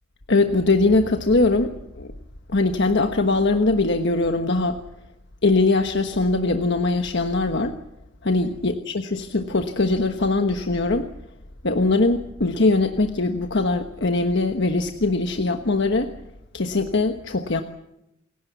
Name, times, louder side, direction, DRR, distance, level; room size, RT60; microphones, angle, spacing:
voice 1, 0.3-2.1 2.5-4.8 5.4-7.8 8.2-11.1 11.6-16.1 16.5-17.6, left 3 dB, 60° left, 6 dB, 1.3 m, -21 dB
28.5 x 17.0 x 8.3 m, 0.88 s
head